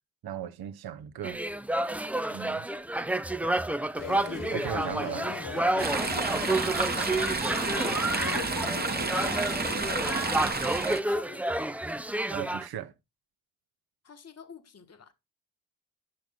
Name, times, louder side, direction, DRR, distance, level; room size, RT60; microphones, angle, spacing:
voice 1, 0.2-1.4 2.3-2.7 4.5-5.3 12.3-12.9, right 10 dB, 65° right, 0.8 m, -37 dB
sound 1, 1.2-12.7, right 1 dB, 5° right, 0.4 m, -30 dB
sound 2, 3.9-10.2, left 9 dB, 55° left, 0.7 m, -40 dB
Chatter / Stream, 5.8-11.0, right 3 dB, 25° right, 1.0 m, -30 dB
voice 2, 7.5-8.6 9.1-10.7 11.0-11.7 14.0-15.1, left 6 dB, 40° left, 1.3 m, -46 dB
9.7 x 5.9 x 3.5 m
supercardioid pair, 45°, 40 cm